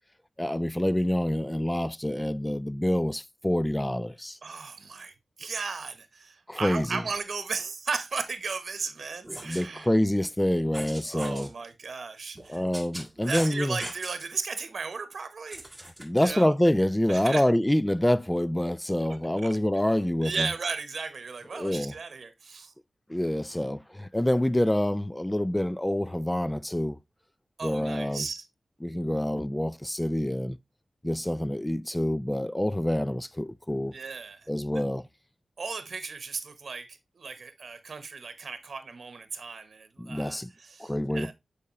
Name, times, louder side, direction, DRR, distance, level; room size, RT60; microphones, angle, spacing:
voice 1, 0.4-4.4 6.5-7.0 9.4-11.5 12.5-13.8 16.0-20.5 21.5-21.9 23.1-27.0 27.6-28.3 28.8-30.6 31.0-33.9 34.5-35.1 40.0-40.5 40.8-41.3, left 1 dB, 10° left, 0.3 m, -26 dB
voice 2, 4.4-9.9 11.1-12.6 13.3-15.6 16.2-16.5 17.1-17.4 19.4-19.5 20.2-22.7 27.6-28.5 33.9-34.5 35.6-41.3, right 4 dB, 70° right, 0.9 m, -36 dB
sound 1, 9.2-9.6 10.7-11.5 12.3-14.3 15.5-16.4, right 1 dB, 10° right, 1.5 m, -40 dB
7.0 x 4.9 x 2.9 m
wide cardioid pair, 75°, 0 cm